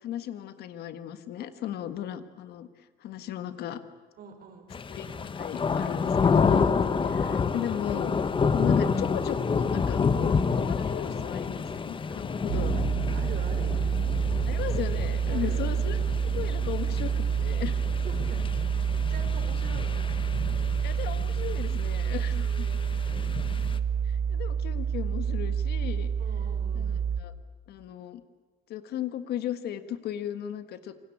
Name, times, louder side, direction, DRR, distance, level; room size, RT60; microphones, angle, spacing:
voice 1, 0.0-2.7 3.0-3.8 4.9-6.7 7.0-8.1 8.5-10.3 10.6-12.9 14.5-16.0 16.3-17.8 20.8-22.7 24.0-26.1 26.7-27.3 27.7-28.2 28.7-30.9, left 10 dB, 70° left, 11 dB, 1.6 m, -36 dB
voice 2, 4.2-4.7 13.1-13.8 15.3-15.6 17.9-18.8 19.1-20.1 22.3-23.8 26.2-27.1, right 6 dB, 65° right, 5 dB, 5.3 m, -44 dB
sound 1, 4.7-23.8, left 5 dB, 30° left, 1.2 m, -29 dB
sound 2, 12.5-27.2, right 7 dB, 80° right, 1.8 m, -28 dB
27.5 x 19.5 x 8.6 m, 1.4 s
cardioid pair, 110°, 17 cm